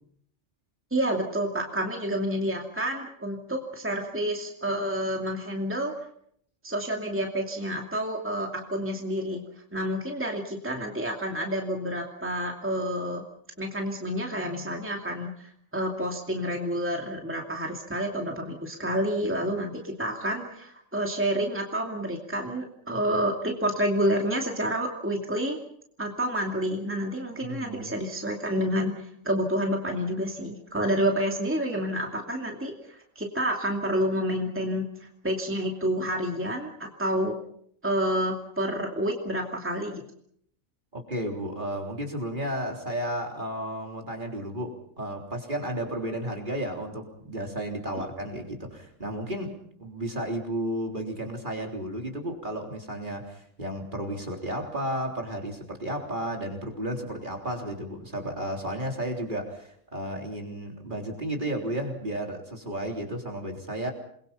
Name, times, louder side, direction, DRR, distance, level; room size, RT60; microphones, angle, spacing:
voice 1, 0.9-5.9 6.6-9.4 9.7-13.2 13.6-25.6 26.0-34.9 35.2-37.3 37.8-40.0, equal, 10° right, 1 dB, 2.5 m, -29 dB
voice 2, 27.4-27.9 40.9-63.9, right 1 dB, 40° right, 2 dB, 3.8 m, -33 dB
28.5 x 21.5 x 5.6 m, 0.67 s
omnidirectional pair, 1.3 m